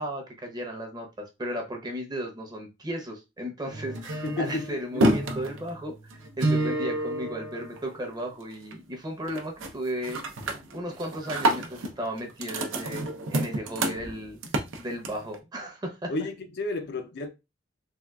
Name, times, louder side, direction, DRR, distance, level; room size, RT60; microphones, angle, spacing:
voice 1, 0.0-14.4 14.8-16.1, equal, 20° right, 0.7 m, -35 dB
sound 1, 3.7-8.2 8.5-9.0 9.3-9.7 10.0-15.3, right 1 dB, 80° right, 0.6 m, -29 dB
voice 2, 4.2-5.1 16.1-17.3, left 2 dB, 55° left, 0.5 m, -32 dB
3.6 x 2.4 x 2.2 m
head